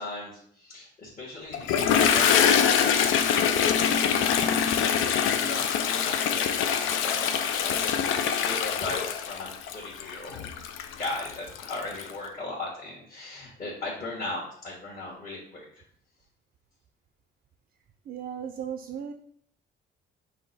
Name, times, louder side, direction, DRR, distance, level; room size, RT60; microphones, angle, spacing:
voice 1, 0.0-2.3 2.5-6.5 7.0-8.1 8.4-10.5 11.0-15.6, left 2 dB, 45° left, -6 dB, 1.3 m, -38 dB
Toilet flush, 1.5-12.1, left 8 dB, 85° left, 0.4 m, -24 dB
voice 2, 18.1-19.1, right 8 dB, 55° right, 6 dB, 0.4 m, -36 dB
5.5 x 2.2 x 4.1 m, 0.64 s
cardioid pair, 90°, 20 cm